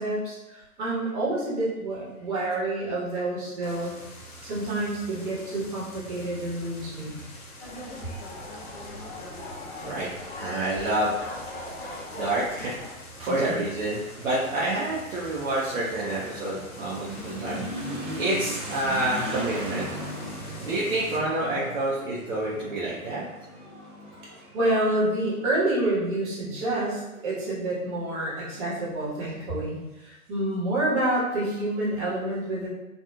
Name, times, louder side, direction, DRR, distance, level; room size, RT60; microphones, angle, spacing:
voice 1, 0.0-3.9 4.4-7.2 13.3-13.7 24.5-32.7, right 1 dB, 35° right, -6 dB, 1.2 m, -28 dB
sound 1, 3.6-21.2, equal, 80° left, 0.8 m, -45 dB
sound 2, 7.6-12.9, left 2 dB, 45° left, 0.6 m, -40 dB
voice 2, 10.3-11.3 12.1-17.7 18.2-19.9 20.6-23.2, right 1 dB, 65° right, -7 dB, 0.7 m, -28 dB
Motorcycle / Accelerating revving vroom, 13.2-25.5, equal, 20° right, 0.4 m, -38 dB
2.9 x 2.4 x 2.3 m, 1.0 s
figure-of-eight pair, 115°, 43 cm